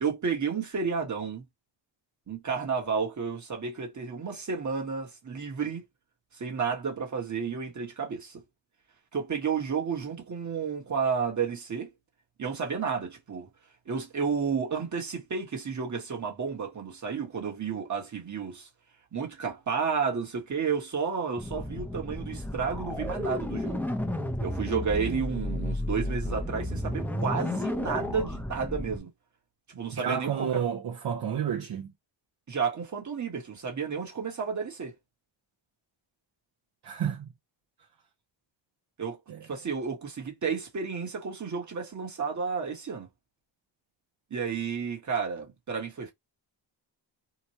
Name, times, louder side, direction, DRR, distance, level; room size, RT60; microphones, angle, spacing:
voice 1, 0.0-1.4 2.3-5.8 6.3-8.4 9.1-11.9 12.4-13.5 13.9-18.7 19.1-23.9 24.4-29.1 29.7-30.6 32.5-34.9 39.0-39.2 39.5-43.1 44.3-46.1, right 6 dB, 35° right, 1.2 m, -31 dB
sound 1, 21.4-29.0, left 1 dB, 5° left, 0.6 m, -32 dB
voice 2, 29.9-31.9 36.8-37.3 39.3-39.5, right 8 dB, 55° right, 0.7 m, -30 dB
2.9 x 2.2 x 2.9 m
cardioid pair, 95°, 48 cm